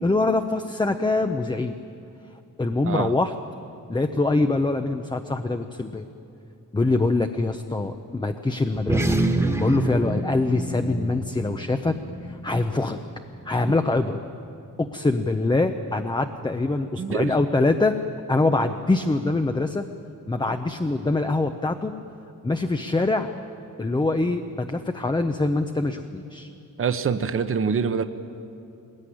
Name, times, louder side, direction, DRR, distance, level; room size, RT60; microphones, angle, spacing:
voice 1, 0.0-1.7 2.6-3.3 3.9-6.1 6.7-9.2 9.6-12.0 12.2-13.0 13.5-14.2 14.8-18.0 18.3-19.8 20.3-21.9 22.4-23.3 23.8-26.5, left 2 dB, 15° left, 6 dB, 0.6 m, -24 dB
sound 1, 8.7-13.5, right 2 dB, 10° right, 1.5 m, -27 dB
voice 2, 17.0-17.3 26.8-28.0, right 6 dB, 40° right, 10 dB, 0.9 m, -25 dB
21.5 x 20.5 x 9.9 m, 2.6 s
wide cardioid pair, 170°, 32 cm